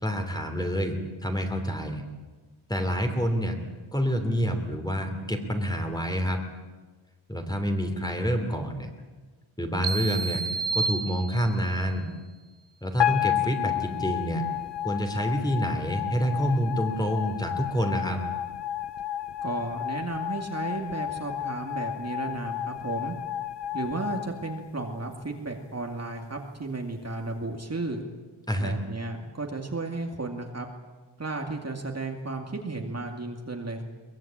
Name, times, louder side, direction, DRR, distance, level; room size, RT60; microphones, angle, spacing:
voice 1, 0.0-2.0 2.7-3.6 3.9-6.4 7.3-8.9 9.6-10.4 10.7-12.1 12.8-14.4 14.8-18.2 28.5-28.8, equal, 10° left, 5 dB, 3.1 m, -27 dB
sound 1, 9.8-11.8, right 4 dB, 55° right, 1.1 m, -30 dB
sound 2, 13.0-25.3, left 12 dB, 60° left, 0.8 m, -32 dB
voice 2, 19.4-23.2 23.7-28.0 28.6-30.7 31.2-33.8, right 2 dB, 30° right, 2 dB, 2.3 m, -33 dB
23.0 x 21.5 x 8.8 m, 1.3 s
wide cardioid pair, 145°, 49 cm